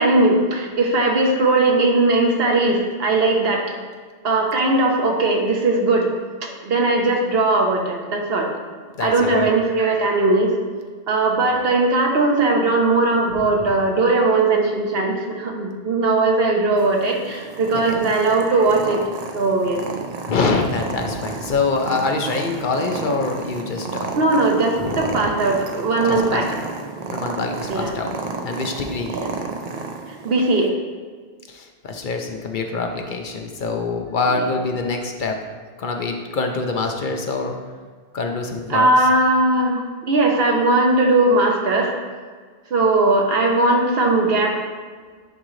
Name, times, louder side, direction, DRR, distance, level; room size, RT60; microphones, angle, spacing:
voice 1, 0.0-3.6 4.2-6.1 6.4-8.5 9.0-10.5 11.1-19.0 19.3-19.8 24.1-26.5 27.7-27.9 29.1-29.3 30.2-30.7 34.3-34.5 38.7-41.9 42.7-44.6, right 2 dB, 70° right, 1 dB, 1.1 m, -19 dB
voice 2, 9.0-9.5 13.3-13.7 17.9-18.0 20.3-24.1 24.8-25.3 26.0-26.8 27.1-28.1 28.4-29.3 31.5-35.5 35.8-37.6 38.1-38.9, left 3 dB, 55° left, 3 dB, 0.7 m, -25 dB
Purr, 16.8-30.7, right 4 dB, 50° right, 0.5 m, -32 dB
10.5 x 3.7 x 3.2 m, 1.6 s
omnidirectional pair, 1.0 m